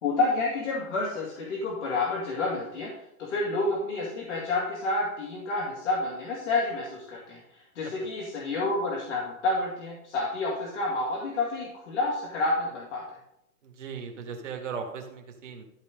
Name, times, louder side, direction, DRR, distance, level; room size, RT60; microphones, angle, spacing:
voice 1, 0.0-2.9 3.2-13.0, left 2 dB, 50° left, -4 dB, 2.4 m, -29 dB
voice 2, 13.6-15.6, right 6 dB, 50° right, 2 dB, 2.0 m, -37 dB
13.0 x 4.4 x 5.1 m, 0.79 s
hypercardioid pair, 175°, 45 cm